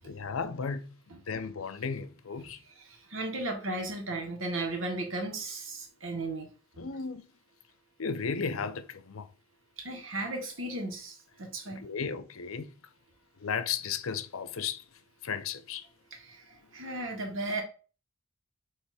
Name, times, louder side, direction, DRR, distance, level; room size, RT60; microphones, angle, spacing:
voice 1, 0.0-1.0 1.3-2.6 6.8-7.3 8.0-9.3 11.7-12.7 13.4-14.8 15.2-15.9, left 5 dB, 80° left, 0.6 m, -34 dB
voice 2, 2.8-6.5 9.8-11.8 16.1-17.6, right 2 dB, 65° right, 2.0 m, -35 dB
7.9 x 3.3 x 4.3 m
head